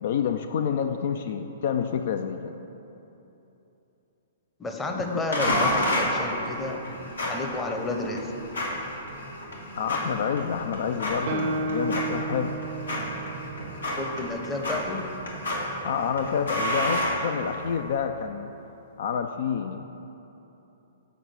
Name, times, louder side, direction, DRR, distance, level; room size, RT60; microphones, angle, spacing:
voice 1, 0.0-2.5 4.9-5.2 9.8-12.6 15.8-18.5 19.0-19.8, left 7 dB, 60° left, 7 dB, 0.3 m, -28 dB
voice 2, 4.6-6.8 7.2-8.3 13.9-15.1, left 2 dB, 15° left, 2 dB, 0.8 m, -31 dB
sound 1, 5.3-17.8, left 1 dB, 85° left, 1.5 m, -31 dB
Guitar, 11.3-14.9, right 3 dB, 55° right, 0.5 m, -33 dB
7.2 x 4.9 x 5.5 m, 3.0 s
hypercardioid pair, 120°, 0 cm